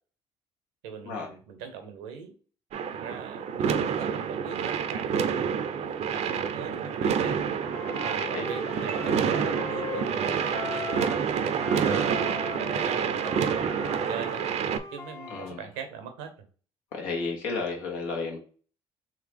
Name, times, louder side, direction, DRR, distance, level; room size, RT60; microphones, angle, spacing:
voice 1, 0.8-2.3 2.9-7.4 7.9-14.4 14.9-16.3, right 6 dB, 90° right, 6 dB, 0.8 m, -41 dB
sound 1, 2.7-14.8, right 7 dB, 60° right, 0.5 m, -28 dB
Wind instrument woodwind instrument, 7.6-11.3 11.5-15.5, left 4 dB, 25° left, 0.6 m, -39 dB
voice 2, 16.9-18.4, left 4 dB, 85° left, 1 dB, 1.2 m, -32 dB
3.8 x 3.0 x 3.4 m, 0.39 s
supercardioid pair, 60°, 13 cm